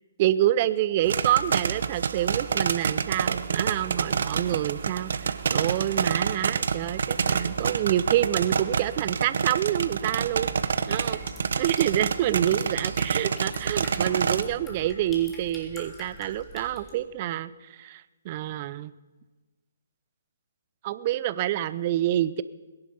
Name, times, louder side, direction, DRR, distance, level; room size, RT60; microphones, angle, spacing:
voice 1, 0.2-10.5 10.9-11.2 11.6-18.9 20.8-22.4, right 12 dB, 40° right, 16 dB, 0.6 m, -27 dB
sound 1, 1.0-14.4, right 6 dB, 65° right, 0.8 m, -28 dB
sound 2, 10.1-16.9, left 1 dB, 15° left, 3.4 m, -45 dB
21.5 x 11.0 x 5.4 m, 1.2 s
hypercardioid pair, 140°, 0 cm